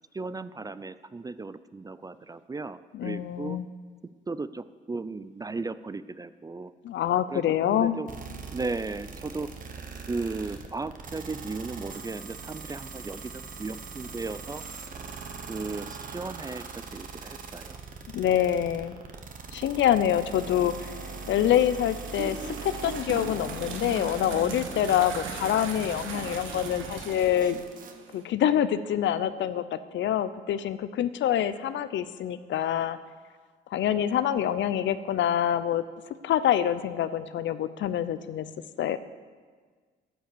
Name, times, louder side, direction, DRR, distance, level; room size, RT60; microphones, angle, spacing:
voice 1, 0.1-3.6 4.3-6.7 7.3-8.2 8.5-9.5 10.1-14.6 15.5-17.8, right 3 dB, 20° right, 14 dB, 0.4 m, -36 dB
voice 2, 2.9-3.6 6.8-8.0 18.1-19.0 19.5-27.6 28.1-33.0 33.7-35.8 36.2-38.5 38.8-39.0, left 10 dB, 70° left, 14 dB, 0.6 m, -26 dB
sound 1, 8.1-27.9, right 4 dB, 40° right, 1.2 m, -41 dB
sound 2, 21.1-28.2, right 5 dB, 85° right, 1.5 m, -39 dB
10.0 x 9.2 x 6.8 m, 1.5 s
cardioid pair, 90°, 20 cm